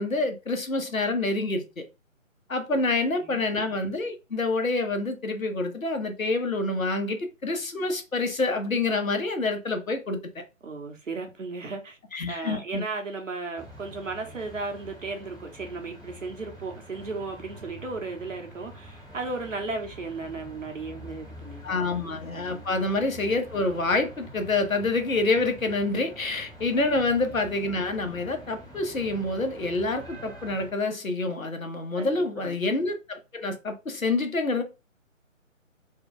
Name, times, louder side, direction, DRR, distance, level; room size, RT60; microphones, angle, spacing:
voice 1, 0.0-1.8 2.5-10.2 12.1-12.8 21.6-34.6, left 3 dB, 85° left, 1.0 m, -27 dB
voice 2, 2.7-3.4 10.6-12.0 12.3-21.8 22.3-22.8 26.8-27.3 32.0-32.6, right 3 dB, 65° right, 1.2 m, -36 dB
sound 1, 13.5-30.7, right 1 dB, 5° left, 0.6 m, -46 dB
3.2 x 2.3 x 3.8 m
figure-of-eight pair, 150°, 40 cm